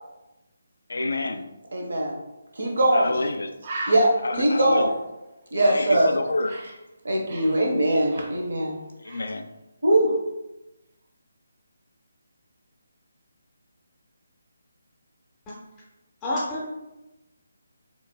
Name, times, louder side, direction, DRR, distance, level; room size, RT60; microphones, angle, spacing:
voice 1, 0.9-1.5 2.9-3.5 4.2-4.9 5.7-6.6 7.2-7.4 9.0-9.5, left 2 dB, 65° left, 8 dB, 0.4 m, -28 dB
voice 2, 1.7-2.1 2.5-3.2 3.9-4.9 5.5-6.1 7.0-8.8 9.8-10.2, right 1 dB, 65° right, 0 dB, 1.0 m, -21 dB
Bird, 2.8-2.9 3.2-3.3 3.6-6.8 7.1-8.7 9.0-9.3, right 2 dB, 40° right, 0.8 m, -39 dB
voice 3, 16.2-16.7, left 1 dB, 15° left, -6 dB, 0.6 m, -28 dB
4.5 x 3.2 x 2.2 m, 0.99 s
figure-of-eight pair, 150°, 0 cm